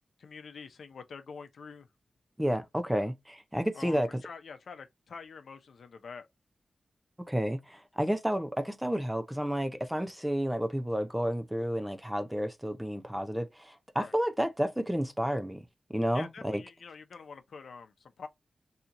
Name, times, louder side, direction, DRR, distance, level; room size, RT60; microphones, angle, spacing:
voice 1, 0.2-1.9 3.7-6.3 14.0-14.1 16.1-18.3, left 5 dB, 80° left, 0.6 m, -46 dB
voice 2, 2.4-4.2 7.3-16.6, equal, 5° right, 0.5 m, -31 dB
4.2 x 2.8 x 2.5 m
wide cardioid pair, 130°, 0 cm